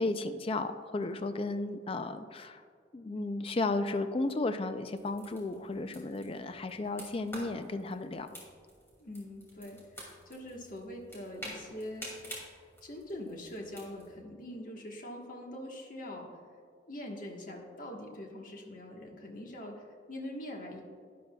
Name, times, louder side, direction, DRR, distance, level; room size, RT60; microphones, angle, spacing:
voice 1, 0.0-2.6 2.9-8.3, left 2 dB, 30° left, 9 dB, 0.4 m, -34 dB
sound 1, 4.9-14.2, equal, 15° left, 2.4 m, -49 dB
voice 2, 9.0-12.1 12.5-16.4 16.9-20.8, left 1 dB, 45° left, 0 dB, 1.3 m, -43 dB
11.5 x 10.0 x 2.3 m, 2.1 s
head